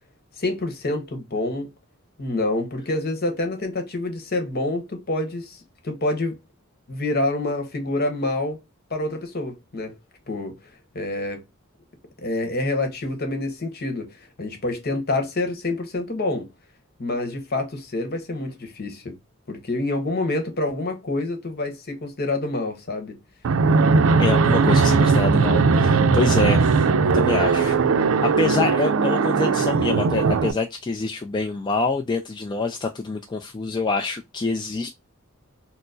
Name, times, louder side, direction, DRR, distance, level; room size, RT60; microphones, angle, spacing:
voice 1, 0.4-1.7 2.2-6.4 6.9-8.6 8.9-10.0 10.3-10.5 10.9-11.4 12.2-16.5 17.0-19.1 19.5-23.2, left 2 dB, 50° left, 1.0 m, -27 dB
Fixed-wing aircraft airplane, 23.4-30.5, right 4 dB, 80° right, 0.4 m, -19 dB
voice 2, 24.2-26.9 27.1-34.9, left 3 dB, 20° left, 0.3 m, -26 dB
4.4 x 2.0 x 2.5 m
head